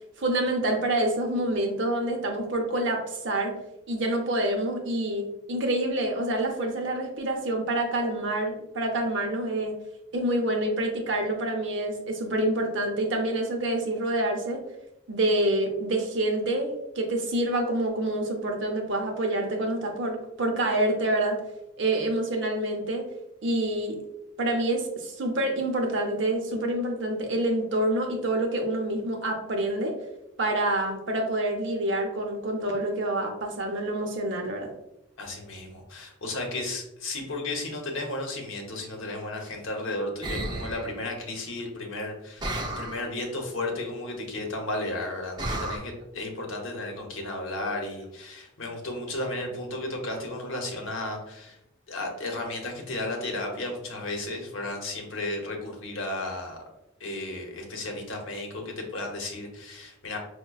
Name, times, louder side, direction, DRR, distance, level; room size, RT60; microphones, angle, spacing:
voice 1, 0.2-3.5 3.9-9.7 10.1-14.6 15.1-21.4 21.8-23.0 23.4-24.0 24.4-29.9 30.4-34.7, right 1 dB, 65° right, 3 dB, 0.6 m, -27 dB
voice 2, 35.2-51.6 51.9-56.6 57.0-60.2, left 2 dB, 75° left, 2 dB, 0.7 m, -34 dB
sound 1, 40.2-40.9 42.4-43.1 45.4-45.8, right 1 dB, 20° right, 0.4 m, -32 dB
4.9 x 2.1 x 2.3 m, 0.86 s
head